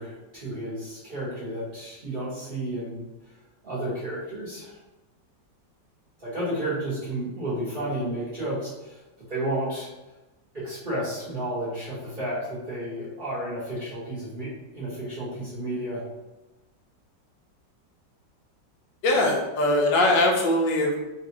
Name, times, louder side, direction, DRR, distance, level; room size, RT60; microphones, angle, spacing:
voice 1, 0.0-3.1 3.6-4.8 6.2-9.0 9.3-9.9 10.5-16.0, right 1 dB, 35° right, -11 dB, 1.0 m, -32 dB
voice 2, 19.0-21.0, left 1 dB, 80° left, -1 dB, 1.3 m, -21 dB
3.3 x 2.4 x 2.8 m, 1.1 s
omnidirectional pair, 2.0 m